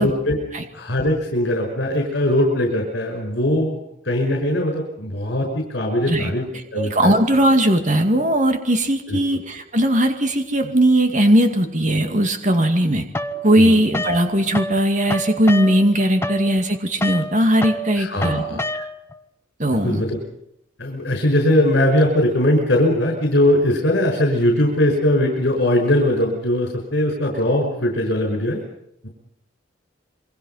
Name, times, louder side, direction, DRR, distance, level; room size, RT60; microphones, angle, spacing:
voice 1, 0.0-0.4 0.7-3.8 4.1-6.5 6.7-7.1 9.1-9.2 13.5-13.8 18.0-18.6 19.7-20.2 20.8-28.6 29.0-29.1, left 1 dB, 60° left, 1 dB, 5.7 m, -20 dB
voice 2, 6.7-13.1 13.4-18.9 19.6-20.0, right 1 dB, 40° right, 6 dB, 2.3 m, -18 dB
sound 1, 13.1-14.8 15.1-19.2, equal, 15° left, 1.2 m, -28 dB
27.5 x 23.5 x 5.8 m, 0.80 s
head